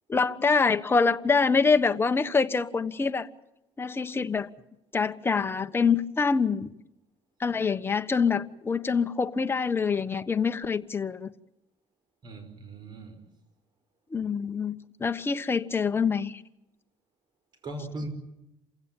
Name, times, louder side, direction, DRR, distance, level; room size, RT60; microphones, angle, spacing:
voice 1, 0.1-3.3 3.8-4.5 4.9-6.7 7.4-11.3 14.1-16.4, left 5 dB, 20° left, 1.2 m, -25 dB
voice 2, 12.2-13.2 17.6-18.1, right 2 dB, 45° right, 5.3 m, -38 dB
28.0 x 16.5 x 8.8 m
cardioid pair, 120°, 11 cm